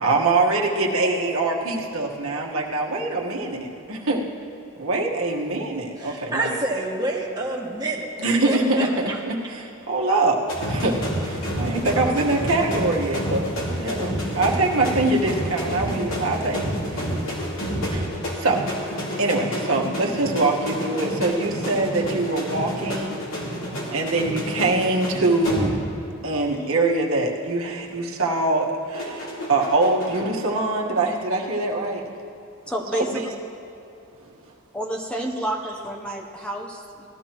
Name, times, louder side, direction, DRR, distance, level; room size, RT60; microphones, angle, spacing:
voice 1, 0.0-4.2 4.8-6.5 8.2-13.4 13.8-16.6 16.9-17.1 17.9-18.1 18.4-18.6 19.1-23.2 23.9-25.7 26.2-29.2 29.5-32.0 32.9-33.2, right 2 dB, 75° right, -1 dB, 1.4 m, -23 dB
voice 2, 6.0-8.1 8.4-9.2, right 2 dB, 20° right, -3 dB, 1.5 m, -27 dB
sound 1, 10.5-26.1 26.4-26.7 28.9-30.2, equal, 70° left, 3.2 m, -29 dB
voice 3, 32.7-33.1 34.7-37.1, right 1 dB, 5° left, 0 dB, 0.8 m, -29 dB
19.0 x 13.5 x 3.0 m, 2.9 s
head